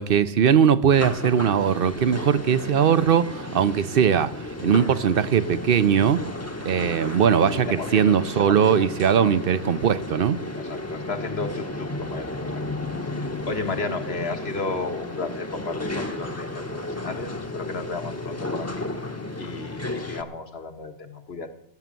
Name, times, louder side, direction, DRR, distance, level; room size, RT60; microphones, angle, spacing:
voice 1, 0.0-4.3 4.6-6.2 6.6-10.4, right 8 dB, 60° right, 0.9 m, -20 dB
sound 1, 0.9-20.2, left 2 dB, 15° left, 0.9 m, -33 dB
voice 2, 7.7-8.2 8.5-8.7 9.2-9.4 10.6-12.6 13.0-18.9 19.4-21.5, left 3 dB, 65° left, 1.7 m, -33 dB
16.5 x 8.2 x 7.6 m
omnidirectional pair, 1.1 m